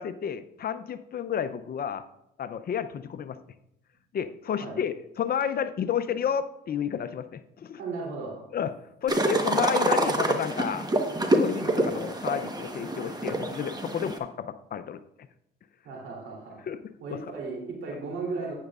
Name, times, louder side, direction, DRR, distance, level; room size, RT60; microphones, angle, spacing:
voice 1, 0.0-2.0 2.4-3.4 4.1-7.8 8.5-8.7 9.0-10.9 11.4-15.0 16.7-16.8 17.1-17.2, left 8 dB, 50° left, 12 dB, 0.6 m, -31 dB
voice 2, 7.8-8.5 15.8-16.6 17.0-18.5, right 3 dB, 85° right, -1 dB, 3.1 m, -35 dB
sound 1, 9.1-14.2, right 1 dB, 20° right, 1.1 m, -27 dB
12.0 x 9.0 x 2.4 m, 0.80 s
cardioid pair, 90°, 20 cm